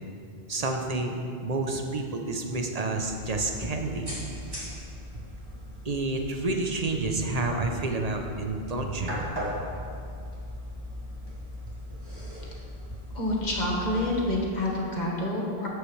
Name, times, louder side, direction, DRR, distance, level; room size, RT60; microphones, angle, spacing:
voice 1, 0.5-4.1 5.8-9.2, right 2 dB, 40° right, 3 dB, 0.9 m, -29 dB
sound 1, 2.9-14.4, left 1 dB, 20° right, 2.3 m, -39 dB
voice 2, 13.1-15.7, left 1 dB, 45° left, -3 dB, 1.7 m, -28 dB
13.5 x 8.0 x 3.3 m, 2.5 s
omnidirectional pair, 1.1 m